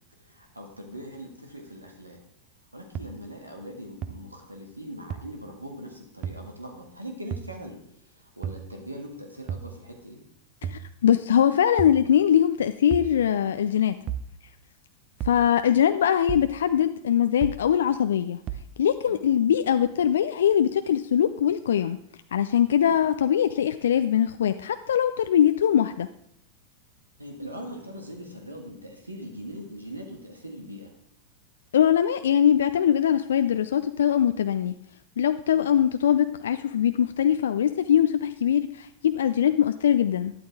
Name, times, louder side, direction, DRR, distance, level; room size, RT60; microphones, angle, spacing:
voice 1, 0.2-2.2 2.7-7.8 8.0-10.2 19.0-19.2 22.8-23.0 27.2-30.9 35.5-35.6, equal, 85° right, 2 dB, 1.9 m, -41 dB
sound 1, 3.0-3.1 4.0-4.1 5.1-5.2 6.2-6.4 7.3-7.5 8.4-8.6 9.5-9.7 10.6-10.9 11.8-12.0 12.9-13.1 14.1-14.3 15.2-15.4 16.3-16.5 17.4-17.6 18.5-18.7, right 9 dB, 35° right, 0.8 m, -32 dB
voice 2, 10.7-14.0 15.2-18.4 18.8-22.0 22.3-26.1 31.7-34.7 35.2-40.3, left 9 dB, 65° left, 10 dB, 0.4 m, -22 dB
12.5 x 11.5 x 3.6 m, 0.70 s
figure-of-eight pair, 90°, 0 cm